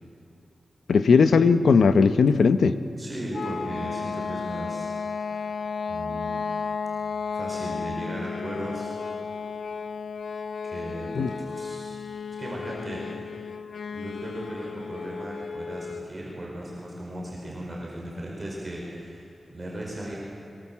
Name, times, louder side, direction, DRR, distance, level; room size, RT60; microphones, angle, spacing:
voice 1, 0.9-2.8 11.1-11.3, left 5 dB, 85° left, 10 dB, 0.9 m, -18 dB
voice 2, 2.9-5.0 5.2-5.4 5.9-6.5 7.3-9.0 10.6-12.0 12.4-13.3 13.9-20.2, right 1 dB, 20° right, -4 dB, 5.0 m, -36 dB
sound 1, 3.3-16.1, left 5 dB, 65° left, 0.5 m, -33 dB
23.5 x 23.5 x 7.4 m, 2.7 s
wide cardioid pair, 165°, 0 cm